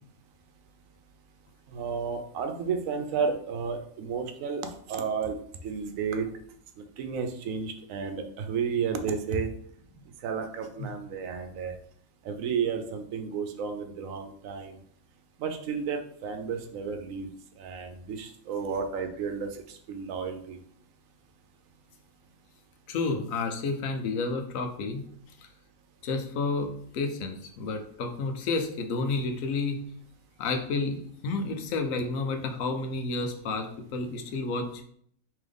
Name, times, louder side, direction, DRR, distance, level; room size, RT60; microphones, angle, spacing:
voice 1, 1.7-4.6 4.9-6.3 7.0-9.5 10.2-11.8 12.2-14.8 15.4-17.3 17.6-20.6, right 6 dB, 80° right, 6 dB, 1.0 m, -32 dB
voice 2, 22.9-25.0 26.0-29.8 30.4-34.8, left 3 dB, 85° left, 5 dB, 1.0 m, -30 dB
3.7 x 3.0 x 3.4 m, 0.63 s
omnidirectional pair, 1.4 m